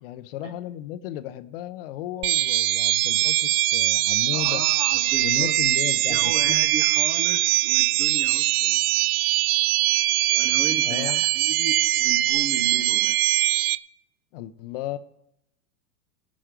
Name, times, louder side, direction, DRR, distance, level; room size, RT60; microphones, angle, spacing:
voice 1, 0.0-4.6 5.2-6.6 10.8-11.2 14.3-15.0, left 12 dB, 40° left, 12 dB, 0.6 m, -34 dB
sound 1, 2.2-13.8, right 16 dB, 70° right, 0.6 m, -22 dB
voice 2, 4.3-5.6 5.9-8.8 10.3-13.2, right 3 dB, 15° right, 7 dB, 0.5 m, -35 dB
18.5 x 6.3 x 5.1 m, 0.80 s
supercardioid pair, 155°, 46 cm